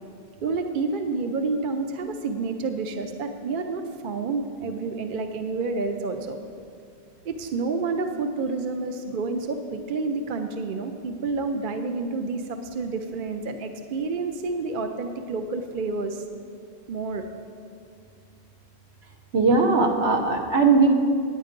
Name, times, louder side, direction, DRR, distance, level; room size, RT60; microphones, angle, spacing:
voice 1, 0.4-6.4 7.2-16.2 16.9-17.2, right 3 dB, 55° right, 6 dB, 0.7 m, -29 dB
voice 2, 19.3-20.9, right 4 dB, 70° right, 2 dB, 1.3 m, -19 dB
10.0 x 9.1 x 5.1 m, 2.3 s
omnidirectional pair, 1.1 m